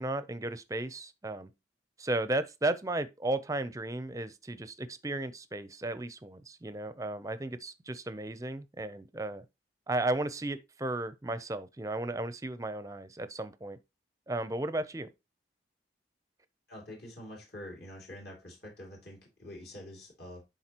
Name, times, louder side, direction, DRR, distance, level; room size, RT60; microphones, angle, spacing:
voice 1, 0.0-1.5 2.0-9.4 9.9-13.8 14.3-15.1, right 2 dB, 20° right, 0.5 m, -34 dB
voice 2, 16.7-20.4, left 1 dB, 60° left, 2.8 m, -46 dB
10.5 x 3.9 x 2.9 m
head